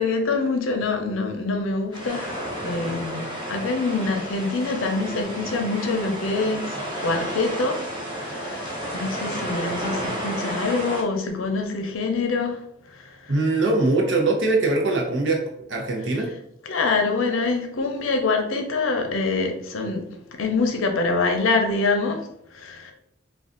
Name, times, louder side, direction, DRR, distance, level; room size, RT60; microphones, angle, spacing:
voice 1, 0.0-7.8 8.1-13.4 16.6-22.9, left 3 dB, 85° left, 3 dB, 0.6 m, -25 dB
sound 1, 1.9-11.0, equal, 25° right, 0.7 m, -31 dB
voice 2, 13.3-15.4 15.7-16.3, right 2 dB, 65° right, 1 dB, 0.7 m, -21 dB
2.5 x 2.3 x 3.7 m, 0.74 s
head